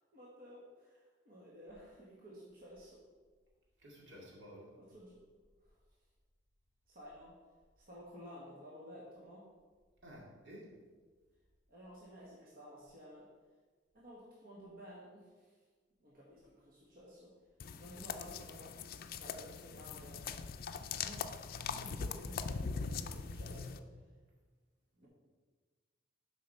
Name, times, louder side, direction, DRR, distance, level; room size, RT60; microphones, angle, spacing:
voice 1, 0.1-3.0 4.1-4.2 4.7-5.2 5.6-5.8 6.9-7.4 7.8-9.5 11.7-13.3 13.9-15.6 16.0-17.3 17.7-18.7 19.1-21.3 21.8-23.8 25.0-25.1, equal, 50° right, -5 dB, 1.5 m, -54 dB
voice 2, 3.8-4.7 10.0-10.7, equal, 75° right, -3 dB, 2.2 m, -53 dB
sound 1, 17.6-23.8, left 5 dB, 55° left, 0.4 m, -41 dB
7.7 x 5.0 x 5.4 m, 1.4 s
head